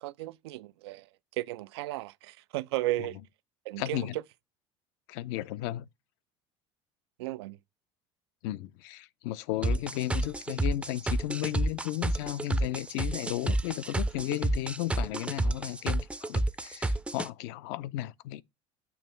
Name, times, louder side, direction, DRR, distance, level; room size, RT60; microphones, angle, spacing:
voice 1, 0.0-3.2 3.7-4.2 7.2-7.6, right 17 dB, 85° right, 0.4 m, -35 dB
voice 2, 3.8-4.2 5.1-5.9 8.4-18.4, left 15 dB, 75° left, 0.5 m, -34 dB
sound 1, 9.6-17.3, right 2 dB, 10° right, 0.4 m, -29 dB
7.1 x 3.0 x 5.5 m
supercardioid pair, 85°, 13 cm